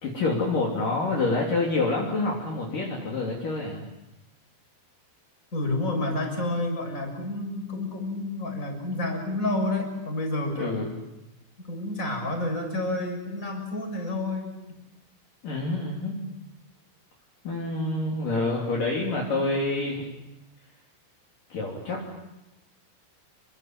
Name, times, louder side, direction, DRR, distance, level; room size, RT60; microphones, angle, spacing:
voice 1, 0.0-3.9 10.6-10.9 15.4-16.3 17.4-20.1 21.5-22.0, left 2 dB, 50° left, -2 dB, 4.7 m, -27 dB
voice 2, 5.5-10.8 11.6-14.6, left 2 dB, 15° left, 3 dB, 6.6 m, -29 dB
29.0 x 25.0 x 7.6 m, 0.93 s
omnidirectional pair, 5.2 m